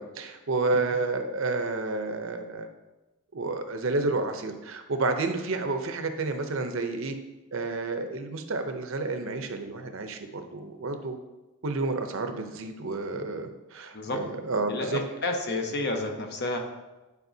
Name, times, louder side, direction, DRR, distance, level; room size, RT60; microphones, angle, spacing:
voice 1, 0.0-2.7 3.3-7.2 7.5-11.2 11.6-15.0, right 3 dB, 65° right, 6 dB, 0.7 m, -30 dB
voice 2, 14.7-16.6, left 2 dB, 50° left, 3 dB, 0.9 m, -30 dB
10.5 x 4.8 x 2.7 m, 1.1 s
head